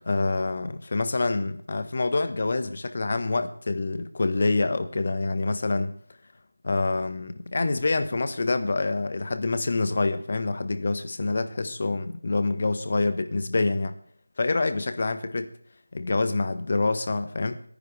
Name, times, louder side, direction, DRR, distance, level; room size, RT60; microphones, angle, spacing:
voice 1, 0.0-5.9 6.6-13.9 14.4-15.5 15.9-17.6, left 3 dB, 45° left, 10 dB, 1.3 m, -26 dB
27.0 x 10.5 x 3.4 m, 0.62 s
figure-of-eight pair, 170°, 0 cm